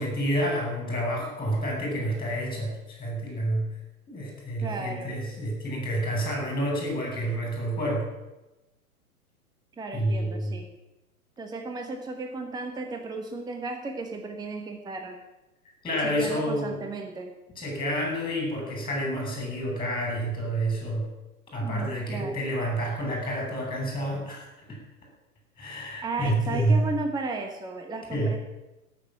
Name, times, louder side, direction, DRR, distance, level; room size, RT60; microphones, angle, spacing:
voice 1, 0.0-3.7 4.1-8.1 9.9-10.5 15.8-16.8 17.6-21.1 21.5-24.8 25.6-26.8 28.1-28.3, right 1 dB, 10° left, 0 dB, 6.5 m, -29 dB
voice 2, 4.6-5.2 9.8-10.7 11.4-15.2 16.0-17.3 21.6-22.4 26.0-28.4, right 3 dB, 10° right, 5 dB, 1.1 m, -35 dB
17.0 x 7.2 x 8.6 m, 1.0 s
figure-of-eight pair, 115°, 46 cm